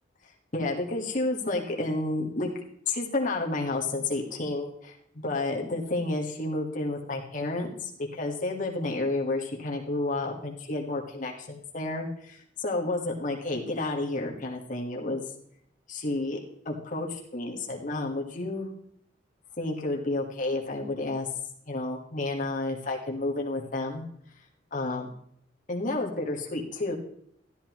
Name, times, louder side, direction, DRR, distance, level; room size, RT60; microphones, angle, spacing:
voice 1, 0.5-2.5 2.9-4.9 5.2-15.2 15.9-16.4 16.6-18.7 19.6-21.3 21.7-24.0 24.7-25.1 25.7-27.0, left 2 dB, 45° left, -1 dB, 1.5 m, -30 dB
12.5 x 11.5 x 3.0 m, 0.70 s
head